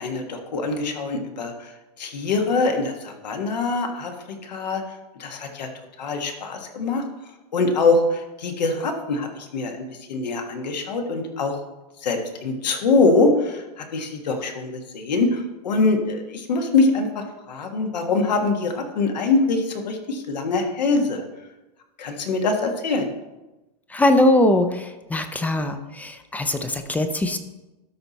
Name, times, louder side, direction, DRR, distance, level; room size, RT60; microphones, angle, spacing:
voice 1, 0.0-1.7 2.0-4.8 5.2-5.7 6.0-7.0 7.5-9.7 10.1-11.6 12.0-21.2 22.0-23.1, left 3 dB, 85° left, 4 dB, 1.5 m, -23 dB
voice 2, 23.9-24.9 25.1-27.4, left 1 dB, 5° left, 8 dB, 0.5 m, -21 dB
12.5 x 4.3 x 4.1 m, 1.0 s
hypercardioid pair, 130°, 21 cm